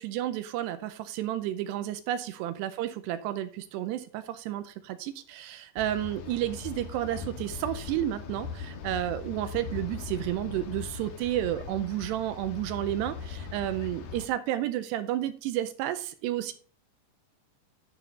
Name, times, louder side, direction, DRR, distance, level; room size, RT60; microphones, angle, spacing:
voice 1, 0.0-16.5, right 13 dB, 80° right, 11 dB, 2.7 m, -31 dB
sound 1, 5.8-14.3, left 6 dB, 65° left, 2.2 m, -40 dB
11.5 x 6.1 x 4.1 m, 0.42 s
omnidirectional pair, 5.1 m